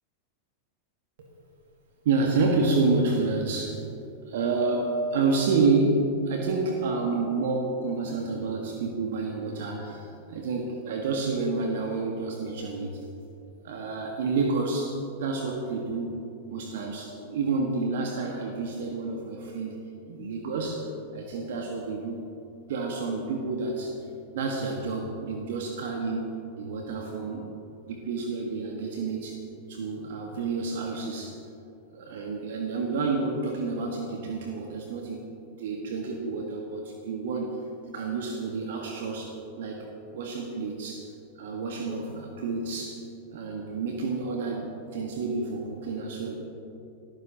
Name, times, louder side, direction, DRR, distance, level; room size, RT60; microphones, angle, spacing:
voice 1, 2.0-3.8 4.2-13.0 13.6-19.8 20.1-22.3 22.7-24.0 24.3-27.5 27.8-29.4 29.7-31.4 31.9-35.3 35.6-37.6 37.9-41.1 41.4-43.0 43.3-46.5, right 3 dB, 55° right, 2 dB, 1.6 m, -29 dB
27.5 x 14.5 x 3.0 m, 2.8 s
figure-of-eight pair, 90°, 0 cm